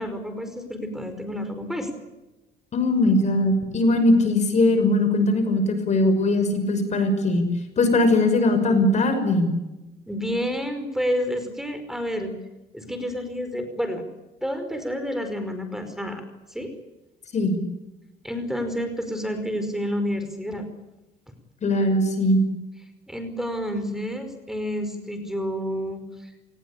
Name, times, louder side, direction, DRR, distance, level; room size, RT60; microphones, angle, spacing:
voice 1, 0.0-1.9 10.1-12.3 12.7-14.0 14.4-16.2 16.5-16.7 18.2-20.7 23.1-26.3, equal, ahead, 8 dB, 5.1 m, -29 dB
voice 2, 2.7-7.5 7.8-9.5 17.3-17.6 21.6-22.4, left 2 dB, 45° left, 9 dB, 6.0 m, -20 dB
28.0 x 20.0 x 8.6 m, 1.0 s
cardioid pair, 110°, 17 cm